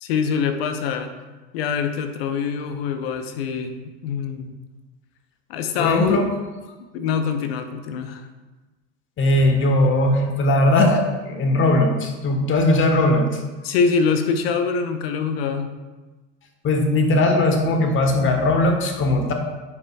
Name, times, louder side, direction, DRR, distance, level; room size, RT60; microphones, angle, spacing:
voice 1, 0.0-1.1 1.5-4.5 5.5-6.2 6.9-8.3 13.6-15.7, left 5 dB, 80° left, 7 dB, 0.8 m, -24 dB
voice 2, 5.8-6.3 9.2-13.3 16.6-19.3, left 1 dB, 40° left, 4 dB, 1.3 m, -19 dB
9.6 x 5.4 x 2.3 m, 1.2 s
hypercardioid pair, 85°, 30 cm